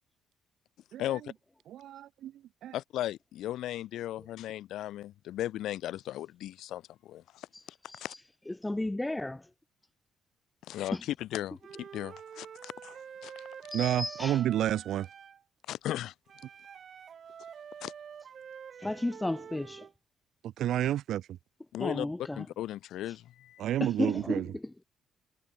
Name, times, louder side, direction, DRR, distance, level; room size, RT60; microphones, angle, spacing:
voice 1, 1.0-1.3 2.7-7.5 7.9-8.1 10.7-13.3 15.7-16.1 17.8-17.9 21.7-22.1 22.4-23.6, left 13 dB, 80° left, 0.5 m, -36 dB
voice 2, 1.7-2.3 2.6-2.8 13.7-15.1 20.4-21.4 23.6-24.5, right 12 dB, 75° right, 0.6 m, -30 dB
voice 3, 8.5-9.4 10.9-11.0 13.7-14.4 18.8-19.9 21.8-22.4 23.8-24.8, left 1 dB, 10° left, 0.8 m, -33 dB
Wind instrument woodwind instrument, 11.6-15.4 16.3-19.9, right 7 dB, 55° right, 2.5 m, -47 dB
cardioid pair, 80°, 0 cm